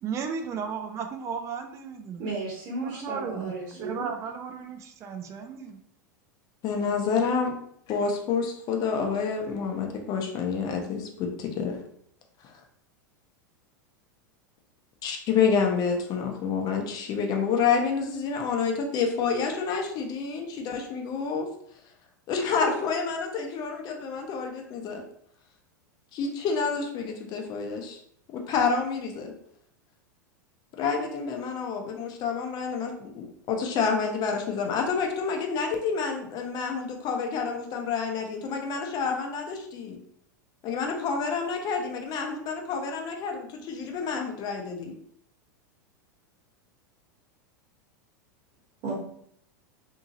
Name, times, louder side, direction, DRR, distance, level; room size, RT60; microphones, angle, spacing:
voice 1, 0.0-2.2 2.8-3.5 3.8-5.8, right 6 dB, 30° right, 5 dB, 0.4 m, -34 dB
voice 2, 2.2-4.1 48.8-48.9, right 3 dB, 50° right, -3 dB, 1.0 m, -34 dB
voice 3, 6.6-7.6 7.9-11.8 12.4-12.5 15.0-21.5 22.3-25.0 26.1-28.0 28.3-29.3 30.8-40.0 40.6-44.9, left 5 dB, 40° left, 3 dB, 0.7 m, -28 dB
2.7 x 2.7 x 2.6 m, 0.67 s
hypercardioid pair, 95°, 10 cm